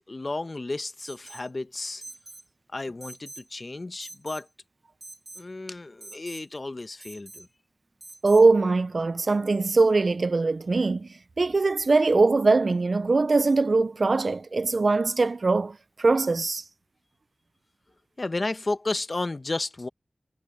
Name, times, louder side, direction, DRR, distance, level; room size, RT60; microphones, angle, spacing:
voice 1, 0.1-2.0 2.7-4.5 5.4-7.5 18.2-19.9, left 2 dB, 50° left, 0.9 m, -32 dB
Alarm, 1.0-1.5 2.0-2.5 3.0-3.5 4.0-4.5 5.0-5.5 6.0-6.5 7.0-7.5 8.0-8.5, right 2 dB, 35° right, 0.8 m, -45 dB
voice 2, 8.2-11.1 11.4-16.6, right 3 dB, 70° right, 0.4 m, -22 dB
wide cardioid pair, 60°, 0 cm